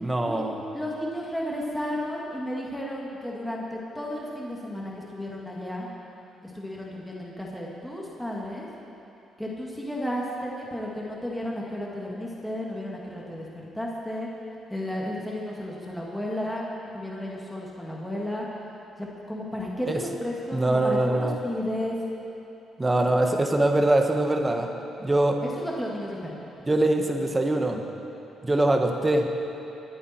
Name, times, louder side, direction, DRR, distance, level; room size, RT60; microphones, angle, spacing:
voice 1, 0.0-0.6 19.9-20.0 20.5-21.3 22.8-24.7 25.0-25.4 26.7-27.8 28.4-29.3, right 1 dB, 20° right, 4 dB, 1.4 m, -23 dB
voice 2, 0.7-5.9 6.5-8.7 9.4-13.5 13.7-14.3 14.7-16.7 16.9-18.5 19.0-22.0 25.4-26.4, left 1 dB, 5° left, -4 dB, 2.2 m, -33 dB
23.0 x 8.7 x 4.5 m, 2.9 s
cardioid pair, 90°, 0 cm